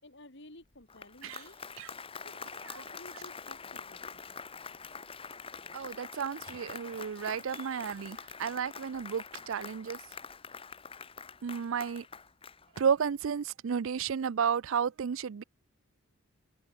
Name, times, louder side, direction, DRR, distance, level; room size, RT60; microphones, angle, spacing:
voice 1, 0.0-1.6 2.2-4.3, left 1 dB, 55° left, 5.5 m, -54 dB
Applause, 0.7-13.3, left 5 dB, 25° left, 1.4 m, -45 dB
voice 2, 5.7-10.0 11.4-12.0 12.8-15.4, right 7 dB, 65° right, 0.4 m, -32 dB
head